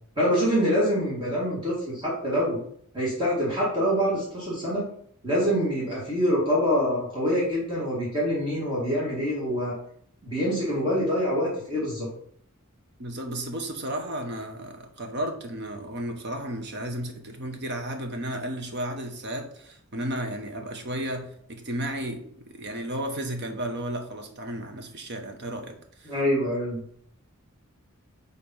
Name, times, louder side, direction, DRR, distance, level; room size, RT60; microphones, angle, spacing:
voice 1, 0.2-2.6 2.9-4.8 5.2-9.7 10.2-12.1 26.1-26.8, equal, 25° right, -6 dB, 1.8 m, -25 dB
voice 2, 13.0-22.2 22.5-26.1, right 1 dB, 50° right, 4 dB, 1.1 m, -33 dB
5.0 x 4.2 x 5.5 m, 0.65 s
head